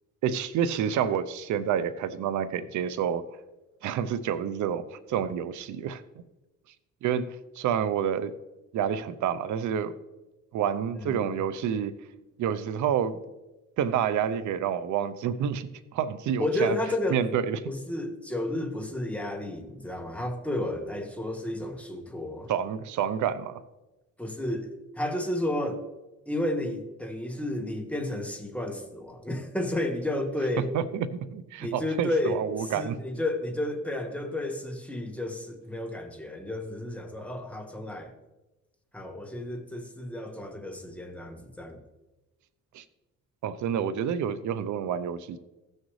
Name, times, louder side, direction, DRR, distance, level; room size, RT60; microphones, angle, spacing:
voice 1, 0.2-3.2 3.8-6.0 7.0-8.3 8.7-9.9 10.5-12.0 12.4-13.2 13.8-16.8 17.1-17.6 22.5-23.6 30.7-33.0 42.7-42.8 43.4-45.4, right 8 dB, 75° right, 14 dB, 0.7 m, -28 dB
voice 2, 11.0-11.4 16.4-17.2 17.6-22.5 24.2-25.8 26.3-30.7 31.6-38.1 38.9-41.8, left 1 dB, 5° left, 4 dB, 1.5 m, -32 dB
15.5 x 6.5 x 3.2 m, 1.0 s
cardioid pair, 90°, 30 cm